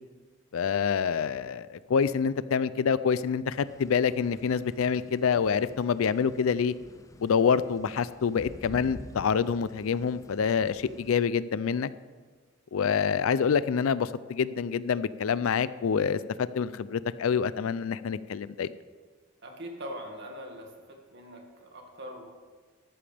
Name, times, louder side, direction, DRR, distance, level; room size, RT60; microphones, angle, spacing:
voice 1, 0.5-6.7 7.2-11.9 12.7-18.7, left 6 dB, 80° left, 16 dB, 0.4 m, -27 dB
sound 1, 3.6-11.2, left 1 dB, 15° left, 0.4 m, -49 dB
voice 2, 19.4-22.3, equal, 55° right, 1 dB, 2.0 m, -42 dB
13.5 x 13.0 x 3.4 m, 1.5 s
head